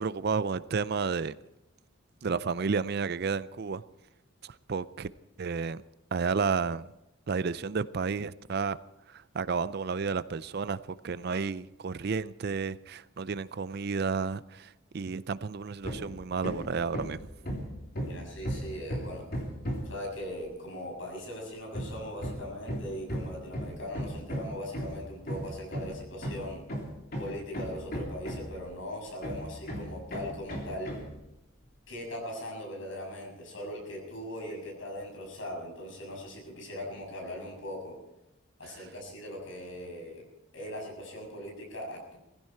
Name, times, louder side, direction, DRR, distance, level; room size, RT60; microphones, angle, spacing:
voice 1, 0.0-1.3 2.2-3.8 4.4-5.1 5.4-5.8 6.1-6.9 7.3-8.8 9.1-17.2, right 5 dB, 50° right, 0.5 m, -31 dB
Hammer, 15.8-16.1 16.4-20.0 21.7-28.7 29.2-31.1, equal, 50° left, 3.3 m, -36 dB
voice 2, 18.1-19.3 19.8-26.6 27.2-30.9 31.9-37.9 38.6-40.2 40.5-42.2, equal, 70° left, 6.8 m, -40 dB
19.5 x 15.5 x 4.4 m
head